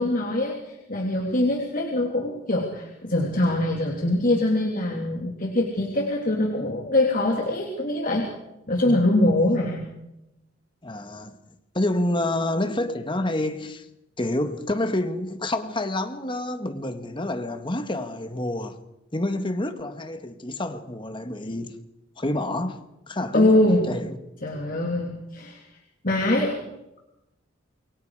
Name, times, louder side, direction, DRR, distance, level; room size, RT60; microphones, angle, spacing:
voice 1, 0.0-8.3 8.7-9.8 23.3-23.9 24.4-25.6 26.0-26.6, left 1 dB, 45° left, 3.2 m, -23 dB
voice 2, 10.8-11.4 11.7-13.9 14.2-18.8 19.1-21.8 22.2-22.8 23.1-23.6 23.9-24.2 26.4-26.6, left 1 dB, 25° left, 1.8 m, -28 dB
28.0 x 23.5 x 5.0 m
head